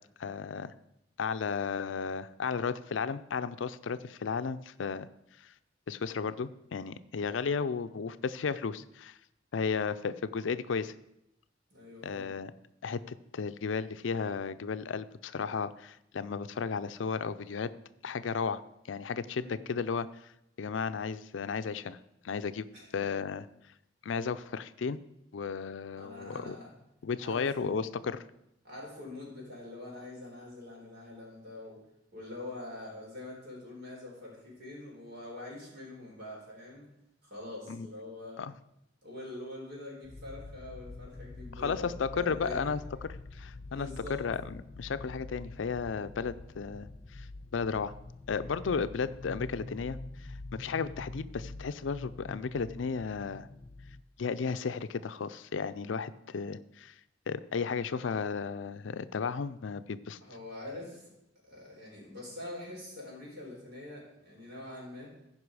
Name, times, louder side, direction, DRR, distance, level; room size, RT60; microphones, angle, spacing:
voice 1, 0.2-0.7 1.2-5.1 5.9-9.2 9.5-10.9 12.0-12.5 12.8-17.7 18.0-18.6 18.9-20.1 20.6-22.0 22.2-22.7 22.9-23.5 24.0-25.0 25.3-26.6 27.0-28.2 37.7-37.9 38.4-38.5 41.5-46.9 47.1-47.3 47.5-47.9 48.3-50.0 50.5-53.5 54.2-56.9 57.3-60.2, left 5 dB, 85° left, 14 dB, 0.5 m, -34 dB
voice 2, 11.7-12.4 19.4-19.6 22.7-22.9 25.9-26.7 27.2-28.1 28.6-31.8 32.1-36.9 37.2-38.4 39.0-42.7 43.7-44.2 60.2-61.1 61.4-65.1, left 2 dB, 60° right, -3 dB, 4.3 m, -44 dB
sound 1, 40.0-54.0, left 2 dB, 25° left, 0.4 m, -45 dB
15.5 x 5.4 x 4.8 m, 0.84 s
head